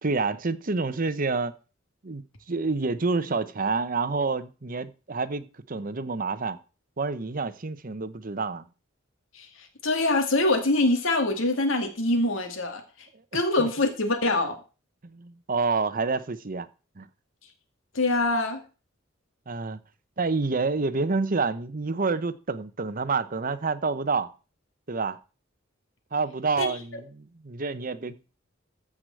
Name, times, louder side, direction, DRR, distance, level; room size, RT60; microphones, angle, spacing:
voice 1, 0.0-1.5 2.0-2.2 2.5-6.6 7.0-8.6 13.6-13.7 15.0-16.7 17.0-17.1 19.5-19.8 20.2-24.3 24.9-25.2 26.1-28.3, right 4 dB, 45° right, 0.9 m, -28 dB
voice 2, 9.3-12.8 13.3-14.6 17.9-18.6 26.6-26.8, left 2 dB, 85° left, 2.1 m, -24 dB
14.0 x 5.0 x 7.6 m
head